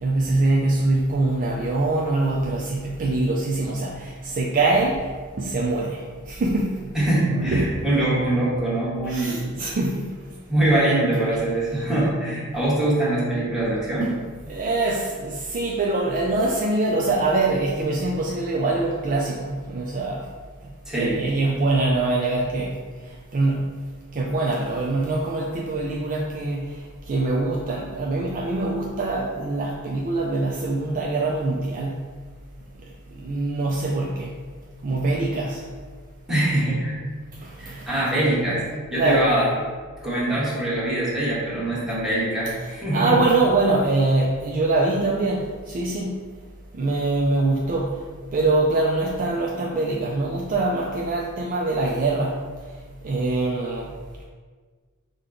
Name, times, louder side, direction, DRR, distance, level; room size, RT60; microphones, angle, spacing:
voice 1, 0.0-7.0 7.3-7.8 9.1-10.2 14.5-20.3 20.9-22.8 23.3-23.8 24.1-26.8 27.1-32.1 33.1-34.3 34.8-35.6 37.4-37.9 39.0-39.3 42.9-46.2 46.7-48.0 48.3-52.5 53.0-53.9, right 2 dB, 35° right, -2 dB, 0.4 m, -24 dB
voice 2, 6.9-9.6 10.5-14.1 20.8-21.3 36.3-37.0 37.6-38.6 38.9-39.5 40.0-43.2, right 1 dB, 5° right, -8 dB, 1.2 m, -23 dB
5.2 x 2.2 x 3.7 m, 1.5 s
head